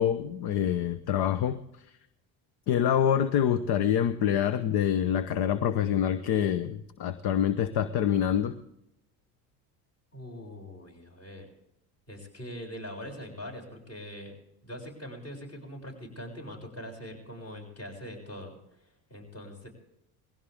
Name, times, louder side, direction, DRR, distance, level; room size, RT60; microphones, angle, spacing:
voice 1, 0.0-1.6 2.7-8.5, left 9 dB, 55° left, 13 dB, 1.0 m, -26 dB
voice 2, 10.1-11.5 12.1-14.3 14.6-19.7, equal, 30° left, 0 dB, 7.0 m, -42 dB
20.0 x 16.5 x 3.6 m, 0.82 s
supercardioid pair, 85°, 47 cm